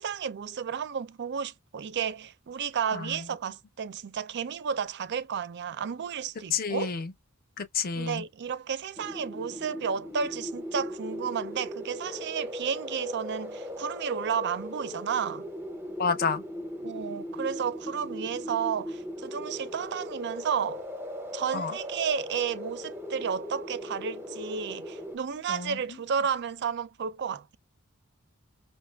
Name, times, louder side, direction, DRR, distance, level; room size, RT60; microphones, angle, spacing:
voice 1, 0.0-6.9 8.0-15.5 16.8-20.8 21.3-27.6, right 7 dB, 55° right, 0.4 m, -32 dB
voice 2, 6.5-7.1 7.6-8.2 16.0-16.4 21.5-21.7 25.5-25.8, left 5 dB, 45° left, 0.6 m, -29 dB
sound 1, 9.0-25.2, equal, 10° right, 0.6 m, -38 dB
5.5 x 2.4 x 2.3 m
head